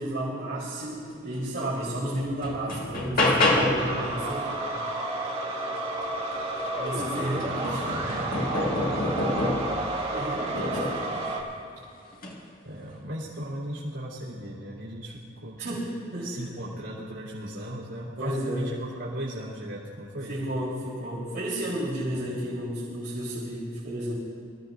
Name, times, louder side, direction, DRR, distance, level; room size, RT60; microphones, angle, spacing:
voice 1, 0.0-4.5 6.8-8.2 10.1-11.0 15.6-16.3 18.2-18.7 20.3-24.2, right 1 dB, 55° right, -10 dB, 3.7 m, -32 dB
sound 1, 1.6-1.7 2.2-4.0 6.3-6.4 6.9-9.8 10.6-11.1 12.1-12.4, left 2 dB, 50° left, 2.0 m, -27 dB
voice 2, 3.3-3.8 4.5-4.6 6.9-8.2 11.0-11.3 12.6-15.6 16.2-20.3 22.1-22.2, right 1 dB, 80° right, -9 dB, 3.1 m, -37 dB
sound 2, 3.8-11.4, right 2 dB, 30° right, 2.0 m, -31 dB
24.5 x 15.0 x 2.6 m, 2.6 s
head